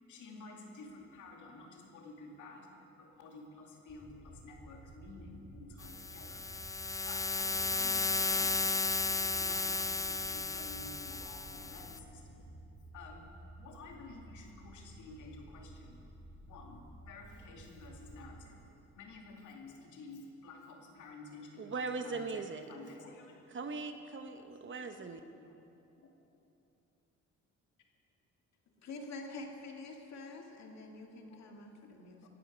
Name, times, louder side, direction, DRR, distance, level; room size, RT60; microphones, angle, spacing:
voice 1, 0.1-2.7 3.0-6.5 7.0-12.5 12.9-13.3 13.6-16.0 16.4-18.6 18.9-23.4 24.4-24.7 25.4-25.6 25.9-26.1 30.8-30.9 31.1-31.9 32.2-32.3, left 3 dB, 80° left, 1 dB, 2.3 m, -52 dB
sound 1, 3.9-18.3, right 2 dB, 10° right, 4.1 m, -53 dB
sound 2, 5.8-12.0, left 3 dB, 10° left, 0.3 m, -34 dB
voice 2, 21.6-22.7 23.5-25.2, right 4 dB, 40° right, 7 dB, 1.1 m, -40 dB
voice 3, 28.8-32.3, left 2 dB, 60° left, 2 dB, 2.1 m, -47 dB
18.0 x 12.5 x 5.2 m, 2.8 s
cardioid pair, 90°, 30 cm